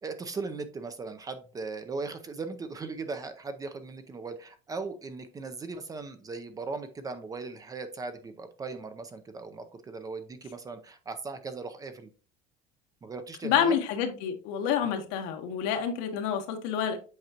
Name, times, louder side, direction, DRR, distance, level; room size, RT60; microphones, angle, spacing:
voice 1, 0.0-12.1 13.0-13.8, right 4 dB, 20° right, 0.6 m, -38 dB
voice 2, 13.4-17.0, left 8 dB, 70° left, 1.3 m, -28 dB
7.8 x 4.8 x 2.9 m
cardioid pair, 150°, 19 cm